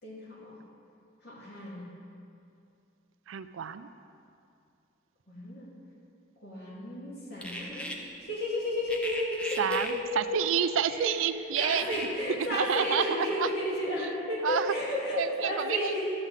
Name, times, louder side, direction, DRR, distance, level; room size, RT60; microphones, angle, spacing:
voice 1, 0.0-0.6 1.2-1.9 5.3-5.7 6.4-10.0 10.9-11.1 11.6-16.1, left 1 dB, 55° left, -6 dB, 2.5 m, -33 dB
voice 2, 3.3-3.9 9.6-11.9 12.5-13.5 14.4-14.7 15.1-15.9, right 8 dB, 85° right, 12 dB, 0.4 m, -29 dB
sound 1, 7.4-7.9 8.9-9.9 11.6-12.1, equal, 5° left, 0.6 m, -37 dB
12.5 x 7.7 x 4.1 m, 2.5 s
head